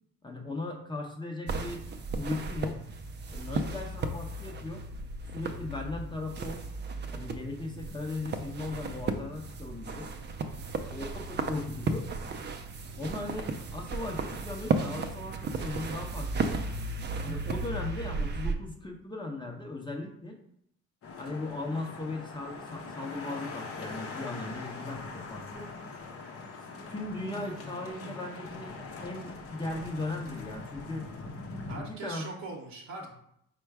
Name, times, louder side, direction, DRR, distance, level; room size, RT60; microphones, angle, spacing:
voice 1, 0.2-1.8 2.2-2.8 3.3-4.8 5.3-6.6 7.1-10.1 10.9-12.1 13.0-16.6 17.2-20.4 21.2-25.7 26.9-31.1 31.8-32.3 33.0-33.1, left 2 dB, 15° left, 2 dB, 0.7 m, -38 dB
sound 1, 1.5-18.5, right 3 dB, 35° right, 0.4 m, -35 dB
voice 2, 3.3-3.8 10.4-10.7 24.3-24.6 31.7-33.1, right 3 dB, 65° right, -1 dB, 0.8 m, -43 dB
sound 2, 21.0-31.8, left 3 dB, 50° left, 0.8 m, -42 dB
4.4 x 2.2 x 4.7 m, 0.74 s
cardioid pair, 90°, 30 cm